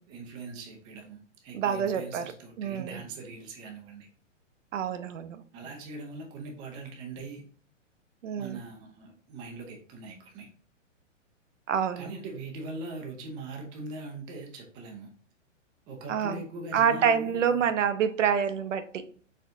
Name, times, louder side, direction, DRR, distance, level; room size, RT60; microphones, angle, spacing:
voice 1, 0.1-4.1 5.5-7.5 8.4-10.5 12.0-15.1 15.9-17.7, right 3 dB, 10° right, 0.4 m, -41 dB
voice 2, 1.5-2.2 2.6-3.0 4.7-5.4 8.2-8.6 11.7-12.1 16.1-16.4 16.7-19.1, right 7 dB, 75° right, 0.7 m, -27 dB
4.3 x 3.5 x 2.6 m
hypercardioid pair, 125°, 38 cm